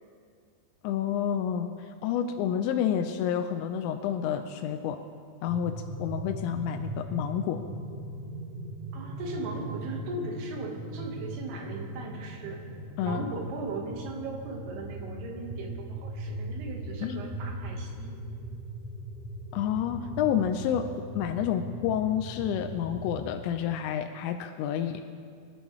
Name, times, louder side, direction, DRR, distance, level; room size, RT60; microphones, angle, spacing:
voice 1, 0.8-5.0 5.4-7.6 13.0-13.3 17.0-17.2 19.5-25.0, left 9 dB, 90° left, 6 dB, 2.9 m, -29 dB
sound 1, 5.5-23.1, right 1 dB, 5° right, 2.2 m, -39 dB
voice 2, 8.9-12.6 13.0-18.1, right 2 dB, 70° right, 1 dB, 3.2 m, -38 dB
23.5 x 11.5 x 3.1 m, 2.2 s
omnidirectional pair, 5.1 m